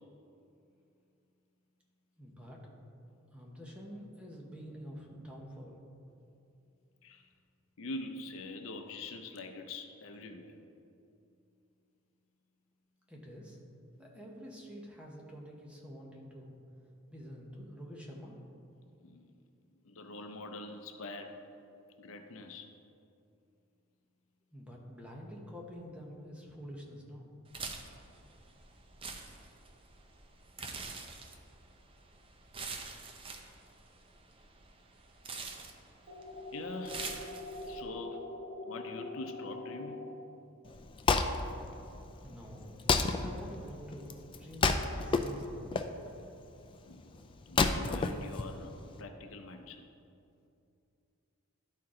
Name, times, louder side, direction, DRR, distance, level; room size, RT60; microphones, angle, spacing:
voice 1, 2.2-2.7 3.3-5.8 13.1-13.6 14.0-16.5 17.1-18.4 24.5-27.4 42.2-42.7 43.2-45.8, equal, 5° right, -2 dB, 1.0 m, -48 dB
voice 2, 7.8-10.6 19.0-19.3 19.8-21.4 22.0-22.7 36.5-37.1 37.7-38.3 38.6-40.1 46.9-47.0 47.5-49.8, left 2 dB, 70° left, 5 dB, 0.6 m, -44 dB
sound 1, 27.5-37.8, right 4 dB, 25° right, 0.5 m, -46 dB
sound 2, 36.1-40.1, left 2 dB, 55° right, 1.3 m, -43 dB
Wood, 40.7-49.0, left 4 dB, 25° left, 0.3 m, -32 dB
12.0 x 4.4 x 3.7 m, 2.6 s
head